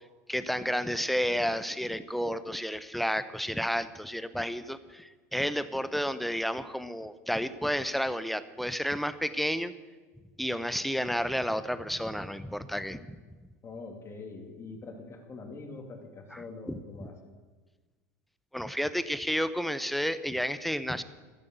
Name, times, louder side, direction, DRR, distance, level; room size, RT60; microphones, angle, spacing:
voice 1, 0.3-9.7 10.4-13.2 16.3-17.1 18.5-21.0, equal, ahead, 14 dB, 0.8 m, -31 dB
voice 2, 13.6-17.2, left 3 dB, 30° left, 4 dB, 2.8 m, -44 dB
13.0 x 9.9 x 8.1 m, 1.3 s
hypercardioid pair, 90°, 9 cm